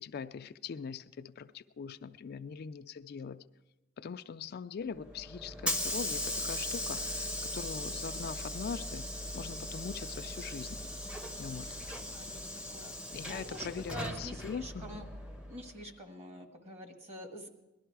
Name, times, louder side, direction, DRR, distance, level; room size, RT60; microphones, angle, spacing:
voice 1, 0.0-3.4 4.0-10.8 11.4-11.7 13.1-15.0, left 6 dB, 50° left, 10 dB, 0.4 m, -42 dB
Hiss / Sliding door, 4.9-15.8, left 1 dB, 5° right, 0.8 m, -39 dB
voice 2, 12.1-12.5 12.7-13.0 13.3-15.0 15.5-17.5, right 1 dB, 35° right, 4 dB, 1.6 m, -46 dB
18.0 x 12.5 x 4.7 m, 1.0 s
head